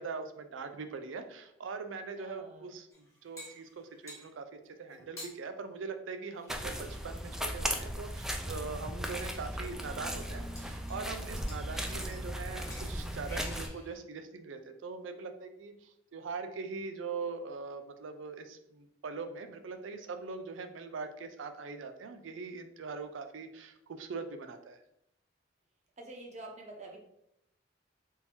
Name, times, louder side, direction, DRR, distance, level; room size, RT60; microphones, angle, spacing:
voice 1, 0.0-4.5 4.8-24.8, right 4 dB, 75° right, 8 dB, 0.4 m, -42 dB
voice 2, 2.2-2.7 26.0-27.0, right 2 dB, 40° right, 0 dB, 0.8 m, -47 dB
sound 1, 2.9-4.3 4.9-5.3 6.3-7.9 8.7-8.8 9.2-9.3 9.6-9.7 10.5-11.2 11.5-12.2 12.5-12.9 13.3-14.0, left 1 dB, 15° left, 0.9 m, -50 dB
sound 2, 6.5-13.7, equal, 5° right, 0.3 m, -37 dB
3.7 x 2.7 x 2.9 m, 0.77 s
head